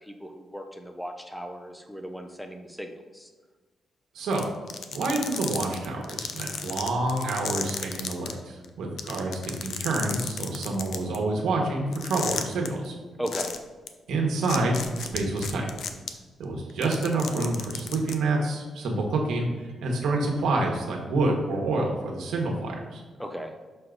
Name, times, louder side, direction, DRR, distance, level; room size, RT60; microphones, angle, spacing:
voice 1, 0.0-3.3 13.2-13.5 23.2-23.5, equal, ahead, 5 dB, 0.5 m, -36 dB
voice 2, 4.1-4.5 4.9-12.9 14.1-15.6 16.4-23.0, right 2 dB, 85° right, 0 dB, 1.3 m, -28 dB
sound 1, 4.3-8.3 8.6-8.7 9.0-11.2 11.9-12.7 13.3-13.6 13.9-14.0 14.4-16.1 16.7-18.1, left 7 dB, 60° left, 0.5 m, -33 dB
6.2 x 4.6 x 3.8 m, 1.4 s
wide cardioid pair, 175°, 0 cm